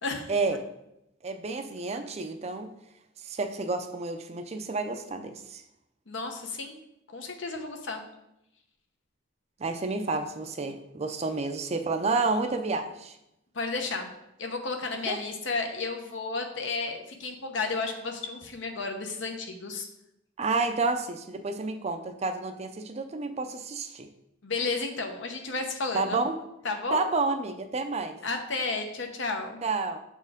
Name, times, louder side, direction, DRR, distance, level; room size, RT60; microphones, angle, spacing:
voice 1, 0.3-0.6 1.2-2.7 3.2-5.6 9.6-13.2 15.1-15.2 20.4-24.1 25.9-26.4 26.9-28.2 29.6-30.0, right 3 dB, 30° right, 7 dB, 0.4 m, -30 dB
voice 2, 6.1-6.8 7.1-8.0 13.5-14.1 14.4-19.9 24.4-26.2 26.6-27.0 28.2-29.6, left 3 dB, 65° left, 4 dB, 0.9 m, -32 dB
7.0 x 4.4 x 3.6 m, 0.85 s
head